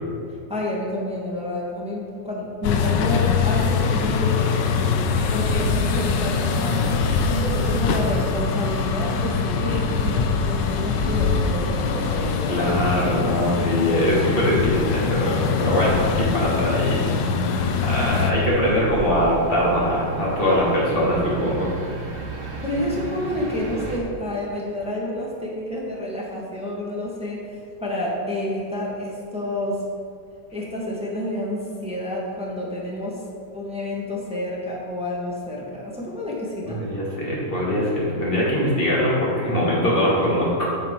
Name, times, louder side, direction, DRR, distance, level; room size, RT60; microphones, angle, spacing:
voice 1, 0.3-4.6 5.0-12.6 21.0-21.4 22.4-29.8 30.5-33.2 33.5-36.8, left 1 dB, 5° right, -4 dB, 1.1 m, -29 dB
sound 1, 2.6-18.3, left 5 dB, 75° left, 1.2 m, -23 dB
voice 2, 5.1-5.5 12.5-17.0 17.8-21.7 36.6-40.6, equal, 30° left, -5 dB, 2.0 m, -22 dB
sound 2, 17.6-24.0, right 2 dB, 35° right, 1.0 m, -34 dB
9.0 x 5.3 x 4.5 m, 2.3 s
omnidirectional pair, 2.1 m